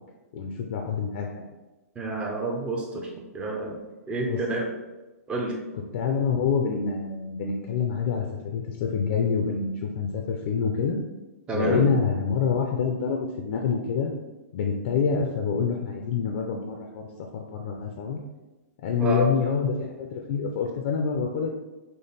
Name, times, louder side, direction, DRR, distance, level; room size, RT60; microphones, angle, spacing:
voice 1, 0.3-1.4 4.3-4.4 5.9-8.3 8.5-11.0 11.5-14.1 14.5-17.1 17.3-18.2 18.8-21.5, left 6 dB, 45° left, 2 dB, 0.5 m, -26 dB
voice 2, 2.0-3.8 4.1-4.7 5.3-5.5 11.5-11.9 19.0-19.3, right 2 dB, 10° right, 1 dB, 0.6 m, -29 dB
5.3 x 2.1 x 4.0 m, 1.1 s
hypercardioid pair, 155°, 9 cm